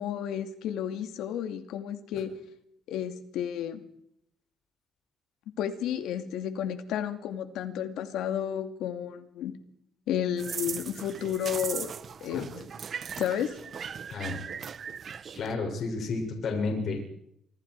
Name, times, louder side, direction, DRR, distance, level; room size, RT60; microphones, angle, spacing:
voice 1, 0.0-2.3 2.9-3.8 5.6-9.6 10.1-11.9 12.2-12.7 13.2-13.6, left 9 dB, 90° left, 8 dB, 2.5 m, -32 dB
sound 1, 10.4-15.5, right 7 dB, 50° right, 1.3 m, -38 dB
voice 2, 15.3-17.0, left 3 dB, 65° left, 2 dB, 6.8 m, -31 dB
28.5 x 26.5 x 4.8 m, 0.73 s
cardioid pair, 90°, 0 cm